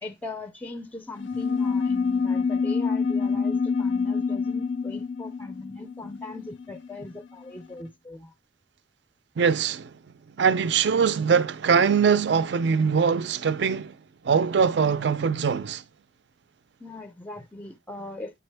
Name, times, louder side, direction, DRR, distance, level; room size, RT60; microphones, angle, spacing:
voice 1, 0.0-8.3 16.8-18.4, left 2 dB, 10° left, 0.4 m, -40 dB
sound 1, 1.2-7.1, left 5 dB, 80° left, 0.4 m, -27 dB
voice 2, 9.4-9.9 10.4-13.9 14.2-15.8, right 6 dB, 65° right, 0.4 m, -22 dB
8.7 x 3.5 x 3.3 m
head